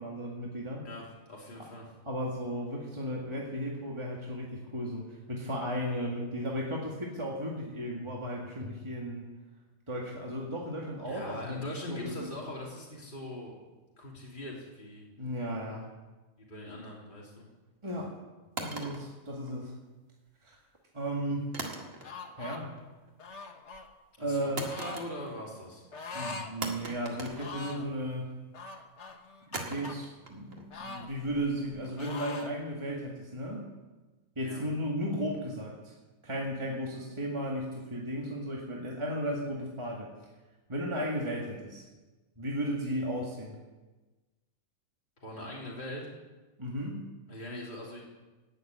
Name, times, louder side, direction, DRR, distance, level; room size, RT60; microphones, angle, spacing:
voice 1, 0.0-0.8 1.6-1.7 2.1-9.3 9.9-12.3 15.2-15.9 17.8-18.1 18.6-19.7 20.4-20.6 20.9-21.5 22.4-22.7 24.2-24.7 26.1-28.4 29.5-33.7 34.4-35.9 36.2-40.1 40.7-41.9 42.4-43.6 46.6-47.1, equal, 20° right, -2 dB, 2.2 m, -35 dB
voice 2, 0.8-1.9 11.1-13.6 14.0-15.1 16.4-17.5 24.2-25.9 34.4-34.7 45.2-46.1 47.3-48.0, left 1 dB, 40° left, -4 dB, 3.4 m, -41 dB
sound 1, 18.6-20.0 21.5-22.4 22.7-23.2 24.6-25.5 25.8-25.9 26.6-28.1 29.5-32.6, right 2 dB, 75° right, 2.4 m, -42 dB
sound 2, 22.0-22.6 23.2-23.9 24.6-25.1 25.9-26.5 26.8-26.9 27.3-27.9 28.5-30.0 30.7-31.7 32.0-32.6, left 3 dB, 60° left, 1.6 m, -42 dB
17.5 x 7.7 x 9.3 m, 1.2 s
omnidirectional pair, 1.4 m